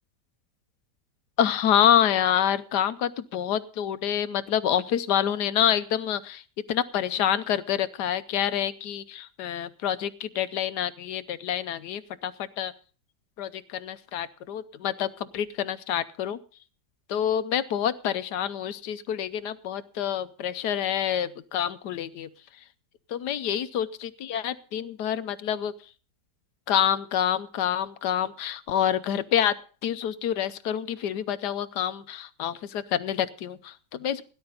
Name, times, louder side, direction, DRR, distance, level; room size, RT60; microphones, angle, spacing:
voice 1, 1.4-6.4 6.7-12.7 13.4-16.4 17.1-22.3 23.1-25.7 26.7-29.6 29.8-34.2, left 10 dB, 80° left, 13 dB, 1.4 m, -27 dB
17.5 x 10.5 x 3.9 m, 0.39 s
omnidirectional pair, 1.8 m